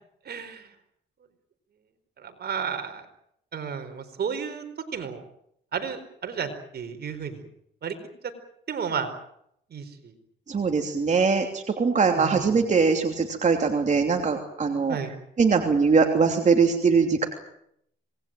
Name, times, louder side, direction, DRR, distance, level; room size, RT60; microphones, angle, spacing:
voice 1, 0.2-0.7 2.2-3.1 3.5-4.6 4.9-5.2 5.7-7.4 7.8-7.9 8.2-8.3 8.7-9.1 9.7-10.1 12.1-12.5 14.9-15.1, right 6 dB, 55° right, 8 dB, 4.5 m, -32 dB
voice 2, 10.5-15.0 15.4-17.3, right 5 dB, 35° right, 3 dB, 3.1 m, -22 dB
26.0 x 20.0 x 9.1 m, 0.75 s
cardioid pair, 90°, 20 cm